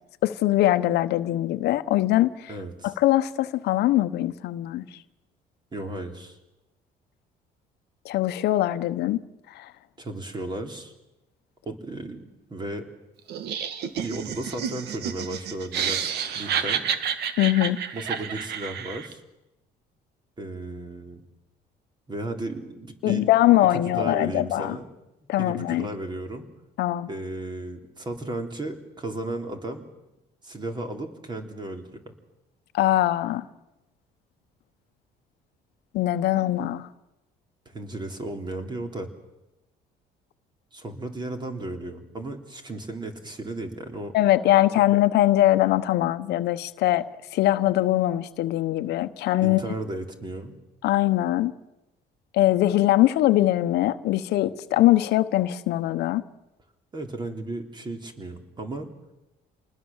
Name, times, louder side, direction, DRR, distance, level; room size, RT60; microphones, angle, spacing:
voice 1, 0.2-2.5 2.8-4.8 8.0-9.2 9.5-9.7 17.4-17.8 23.0-24.8 25.3-25.9 26.8-27.1 32.7-33.5 35.9-36.9 44.1-49.6 50.8-51.5 52.3-56.2, left 14 dB, 75° left, 1.0 m, -22 dB
voice 2, 2.5-2.9 5.7-6.4 10.0-10.9 11.7-12.2 12.5-12.9 14.0-16.1 16.3-16.9 17.9-19.2 20.4-21.2 22.1-23.3 23.7-24.9 25.4-26.5 27.1-29.9 30.4-32.0 37.7-39.1 40.7-44.1 49.4-50.5 56.9-58.9, right 2 dB, 25° right, 3.5 m, -34 dB
Laughter, 13.3-19.1, right 8 dB, 75° right, 1.6 m, -30 dB
27.5 x 20.5 x 7.3 m
cardioid pair, 110°, 17 cm